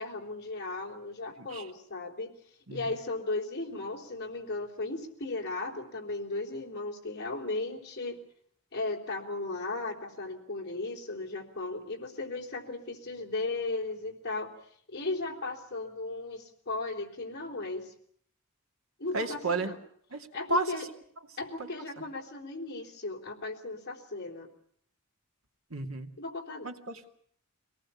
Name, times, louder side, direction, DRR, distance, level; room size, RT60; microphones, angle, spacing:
voice 1, 0.0-2.4 2.7-8.2 8.7-14.5 14.9-17.9 19.0-19.8 20.3-20.9 21.4-24.5 26.2-26.7, left 2 dB, 50° left, 1 dB, 3.7 m, -36 dB
voice 2, 19.1-19.7 20.1-20.8 21.6-21.7 25.7-26.1 26.6-27.1, right 2 dB, 75° right, 4 dB, 2.5 m, -32 dB
23.5 x 18.5 x 8.6 m, 0.63 s
head